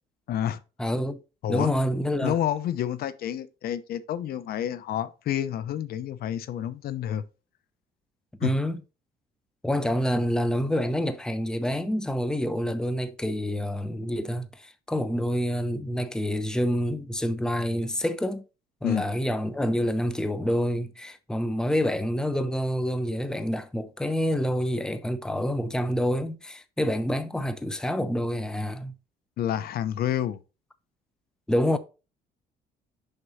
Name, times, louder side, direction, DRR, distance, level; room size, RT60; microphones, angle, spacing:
voice 1, 0.3-0.6 1.4-1.7 2.2-7.2 8.4-8.5 18.8-19.0 29.4-30.4, left 10 dB, 65° left, 0.8 m, -29 dB
voice 2, 0.8-1.2 1.5-2.4 8.4-8.8 9.6-18.4 18.8-28.9 31.5-31.8, equal, 5° left, 0.7 m, -27 dB
6.6 x 6.0 x 2.7 m
cardioid pair, 110°, 17 cm